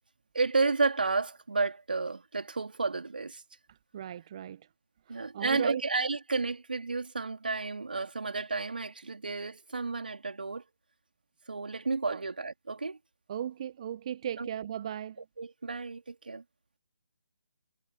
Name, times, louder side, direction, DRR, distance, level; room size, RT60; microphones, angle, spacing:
voice 1, 0.3-3.4 5.1-10.6 11.5-13.0 14.4-14.5 15.4-16.4, right 3 dB, 65° right, 4.2 m, -31 dB
voice 2, 3.7-4.7 5.1-5.8 12.1-12.2 13.3-15.2, right 9 dB, 35° right, 1.6 m, -37 dB
figure-of-eight pair, 145°, 5 cm